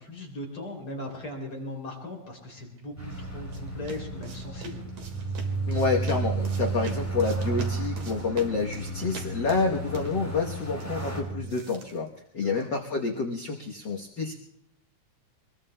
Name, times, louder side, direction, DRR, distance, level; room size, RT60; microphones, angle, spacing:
voice 1, 0.0-4.8 9.8-9.9 12.4-12.7, left 1 dB, 45° left, -1 dB, 3.8 m, -39 dB
sound 1, 2.8-12.8, right 4 dB, 85° right, 3.2 m, -46 dB
sound 2, 3.0-11.2, equal, 5° left, 3.0 m, -44 dB
sound 3, 3.0-11.4, right 3 dB, 70° right, 7.3 m, -33 dB
voice 2, 5.7-12.1 12.3-14.3, left 4 dB, 60° left, 0 dB, 1.1 m, -28 dB
26.0 x 21.0 x 2.2 m, 0.78 s
omnidirectional pair, 3.4 m